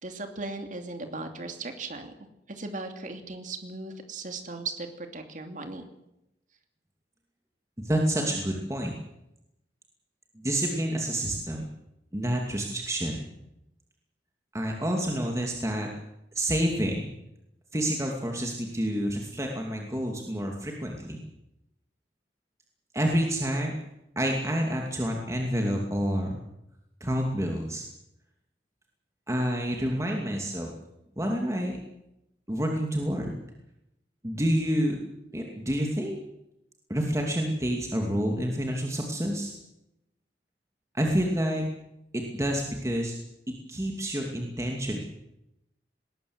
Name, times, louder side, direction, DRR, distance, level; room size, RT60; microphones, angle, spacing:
voice 1, 0.0-2.1 2.5-5.9, right 3 dB, 45° right, 5 dB, 2.7 m, -37 dB
voice 2, 7.8-9.0 10.3-11.6 12.1-13.2 14.5-15.9 16.3-17.0 17.7-21.2 22.9-23.7 24.2-26.4 27.0-27.8 29.3-30.7 31.2-31.8 32.5-33.3 34.2-35.0 35.3-36.2 36.9-39.5 40.9-41.7 42.1-43.2 43.7-45.0, equal, 15° right, 1 dB, 2.6 m, -28 dB
20.0 x 19.5 x 8.0 m, 0.87 s
head